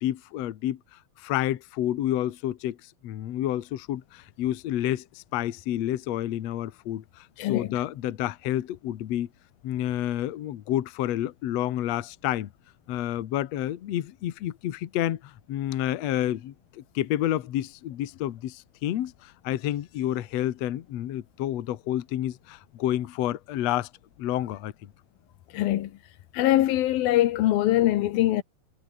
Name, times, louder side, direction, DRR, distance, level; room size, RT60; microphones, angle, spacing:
voice 1, 0.0-2.8 3.0-9.3 9.6-12.5 12.9-23.9 24.2-24.9, left 12 dB, 60° left, 2.0 m, -29 dB
voice 2, 7.4-7.8 25.5-25.9 26.3-28.4, left 14 dB, 90° left, 3.0 m, -23 dB
omnidirectional pair, 4.1 m